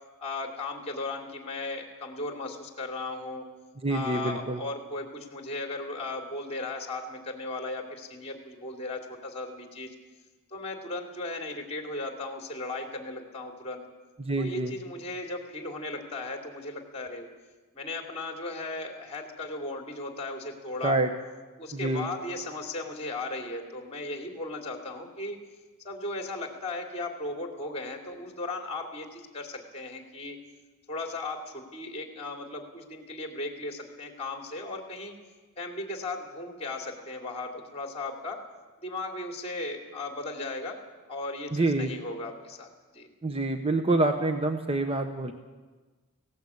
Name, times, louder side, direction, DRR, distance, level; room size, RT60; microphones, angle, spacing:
voice 1, 0.2-3.4 3.9-9.9 10.5-13.8 14.4-17.2 17.7-21.0 21.6-25.4 25.8-30.4 30.9-35.1 35.6-38.4 38.8-40.8 41.1-42.7 42.9-43.1, left 2 dB, 30° left, 3 dB, 3.0 m, -36 dB
voice 2, 3.8-4.6 14.2-14.7 20.8-21.1 21.7-22.1 41.5-41.9 43.2-45.3, right 2 dB, 25° right, 6 dB, 1.1 m, -27 dB
18.5 x 17.5 x 8.5 m, 1.3 s
head